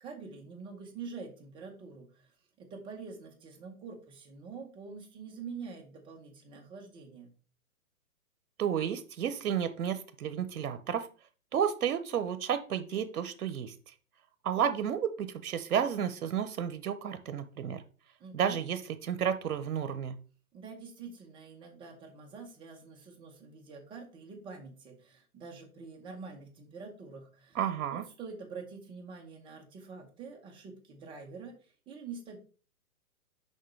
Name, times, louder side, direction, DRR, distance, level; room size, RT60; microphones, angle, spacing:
voice 1, 0.0-7.3 18.2-18.6 20.5-27.6 27.9-32.4, right 5 dB, 10° right, 1 dB, 0.9 m, -46 dB
voice 2, 8.6-11.1 11.5-13.7 14.4-17.8 18.3-20.2 27.5-28.0, right 8 dB, 90° right, 11 dB, 0.8 m, -31 dB
6.5 x 5.1 x 3.2 m, 0.37 s
hypercardioid pair, 150°, 43 cm